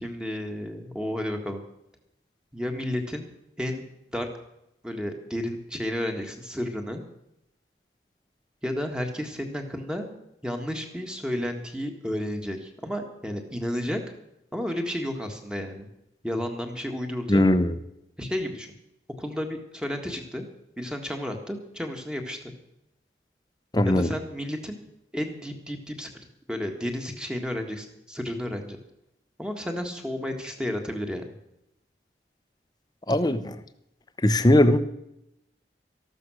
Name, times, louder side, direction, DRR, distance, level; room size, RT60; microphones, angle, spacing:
voice 1, 0.0-1.6 2.5-3.3 3.6-3.8 4.1-4.3 4.8-7.0 8.6-10.1 10.4-14.0 14.5-15.9 16.2-17.4 18.2-18.7 19.2-20.5 20.8-22.5 23.9-24.8 25.1-26.1 26.5-28.8 29.4-31.2, equal, 5° right, 4 dB, 1.7 m, -32 dB
voice 2, 17.3-17.7 23.7-24.1 33.1-33.5 34.2-34.8, left 1 dB, 25° left, 11 dB, 0.8 m, -19 dB
14.0 x 12.5 x 6.3 m, 0.84 s
head